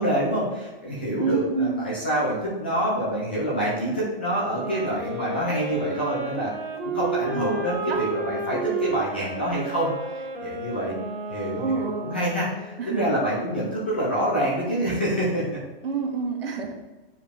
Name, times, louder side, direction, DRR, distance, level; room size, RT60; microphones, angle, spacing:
voice 1, 0.0-6.5 6.9-9.9 10.4-10.9 11.3-15.4, equal, 10° left, -7 dB, 0.4 m, -26 dB
voice 2, 1.2-1.8 7.3-8.0 11.6-12.1 12.8-13.0 15.8-16.8, right 5 dB, 70° right, 1 dB, 1.6 m, -28 dB
Wind instrument woodwind instrument, 4.4-12.7, right 4 dB, 55° right, 1.4 m, -32 dB
9.4 x 4.8 x 3.3 m, 1.2 s
hypercardioid pair, 180°, 30 cm